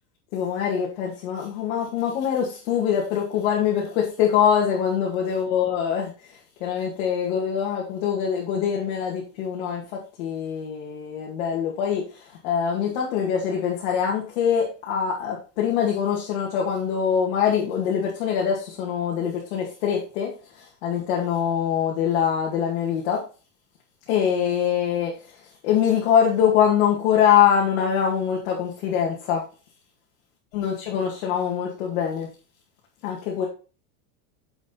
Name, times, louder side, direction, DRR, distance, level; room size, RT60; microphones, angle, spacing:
voice 1, 0.3-23.2 24.1-29.4 30.5-32.3 33.0-33.5, left 8 dB, 45° left, 2.2 m, -24 dB
7.2 x 6.3 x 4.2 m
supercardioid pair, 170°, 47 cm